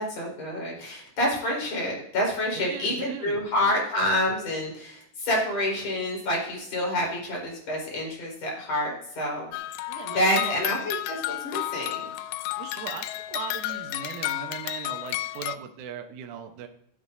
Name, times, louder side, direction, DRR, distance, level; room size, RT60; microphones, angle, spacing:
voice 1, 0.0-9.5 10.1-12.1, left 1 dB, 40° left, -2 dB, 5.4 m, -28 dB
voice 2, 2.6-3.5 9.9-10.6 12.6-16.7, right 8 dB, 65° right, 5 dB, 2.1 m, -39 dB
sound 1, 9.5-15.6, left 16 dB, 85° left, 2.2 m, -32 dB
16.0 x 9.6 x 2.8 m, 0.71 s
omnidirectional pair, 4.9 m